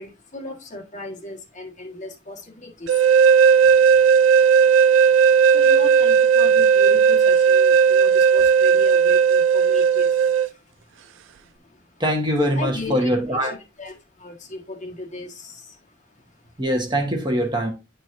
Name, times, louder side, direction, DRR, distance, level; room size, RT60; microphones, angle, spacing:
voice 1, 0.0-3.1 4.5-12.0 12.5-13.1 13.4-16.5, left 2 dB, 40° left, 1.6 m, -37 dB
sound 1, 2.9-10.5, right 6 dB, 85° right, 0.3 m, -15 dB
voice 2, 12.0-13.5 16.6-17.7, equal, 25° right, 1.3 m, -22 dB
9.8 x 4.5 x 2.6 m
head